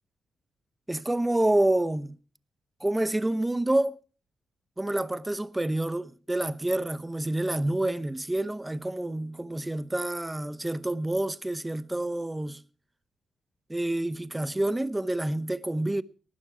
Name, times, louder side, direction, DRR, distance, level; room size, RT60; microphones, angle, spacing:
voice 1, 0.9-2.2 2.8-4.0 4.8-12.6 13.7-16.0, right 1 dB, 10° right, 0.7 m, -28 dB
19.0 x 11.5 x 4.6 m
cardioid pair, 90°, 0 cm